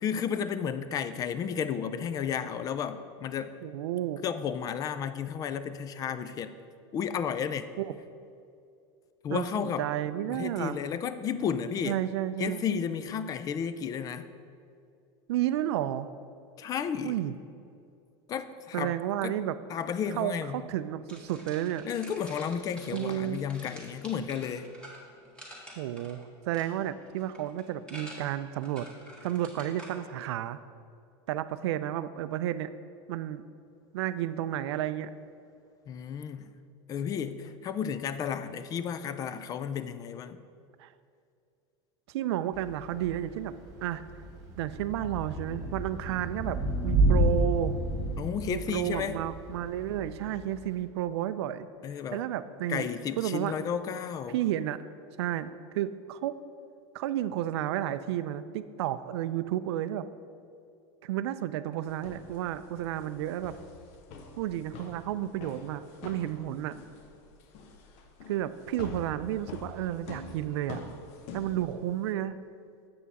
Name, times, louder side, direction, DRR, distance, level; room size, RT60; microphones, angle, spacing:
voice 1, 0.0-3.5 4.2-6.5 6.9-7.7 9.2-9.9 10.3-12.0 12.4-14.3 16.6-17.2 18.3-19.0 19.2-19.4 19.7-20.6 21.8-24.7 35.9-36.5 36.9-40.4 48.2-49.2 51.8-52.3 52.7-54.4, left 7 dB, 25° left, 12 dB, 0.3 m, -33 dB
voice 2, 3.6-4.2 7.8-7.9 9.3-10.8 11.8-12.6 15.3-16.1 17.0-17.3 18.7-19.6 20.2-21.9 22.9-23.4 25.8-28.9 29.2-30.6 31.3-32.7 33.1-33.4 33.9-35.1 40.8-40.9 42.1-43.5 43.8-44.0 44.6-47.7 48.5-51.7 52.1-52.9 53.2-53.7 54.3-54.8 55.2-56.4 56.9-60.1 61.0-63.6 64.4-66.8 68.3-70.8 71.3-72.4, right 12 dB, 80° right, 13 dB, 0.4 m, -32 dB
sound 1, 21.1-29.9, right 1 dB, 5° left, 1.7 m, -48 dB
Thunder / Rain, 42.5-50.8, right 1 dB, 25° right, 1.5 m, -31 dB
sound 2, 61.9-72.1, left 4 dB, 50° left, 0.8 m, -47 dB
7.7 x 6.2 x 4.1 m, 2.4 s
supercardioid pair, 135°, 14 cm